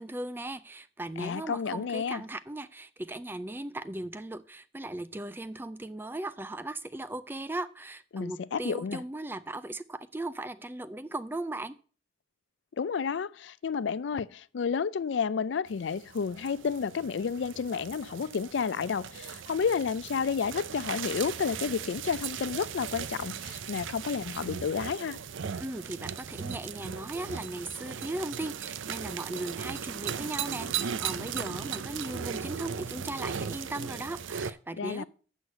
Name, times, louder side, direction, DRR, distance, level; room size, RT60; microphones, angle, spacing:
voice 1, 0.0-11.8 25.6-35.0, right 1 dB, 10° right, 0.4 m, -38 dB
voice 2, 1.2-2.2 8.1-9.0 12.8-25.2 34.8-35.0, left 6 dB, 75° left, 0.4 m, -31 dB
sound 1, 15.7-34.5, right 7 dB, 85° right, 0.5 m, -37 dB
7.9 x 6.3 x 6.6 m
head